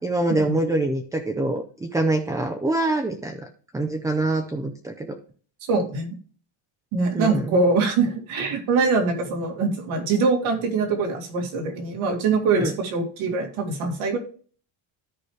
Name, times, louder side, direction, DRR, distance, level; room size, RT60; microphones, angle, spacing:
voice 1, 0.0-3.4 3.7-5.2 7.1-7.6 12.5-12.8, right 2 dB, 10° right, 5 dB, 0.3 m, -25 dB
voice 2, 5.7-6.2 6.9-14.2, right 4 dB, 90° right, 1 dB, 2.2 m, -23 dB
13.5 x 4.8 x 3.1 m, 0.42 s
cardioid pair, 170°, 47 cm